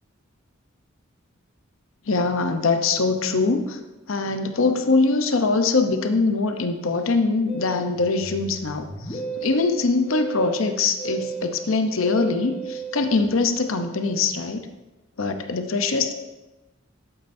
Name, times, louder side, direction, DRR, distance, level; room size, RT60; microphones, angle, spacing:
voice 1, 2.1-3.8 4.1-14.7 15.2-16.1, left 3 dB, 75° left, 7 dB, 0.7 m, -23 dB
Musical instrument, 7.5-14.3, right 4 dB, 25° left, 1.2 m, -35 dB
12.0 x 8.8 x 2.6 m, 1.1 s
head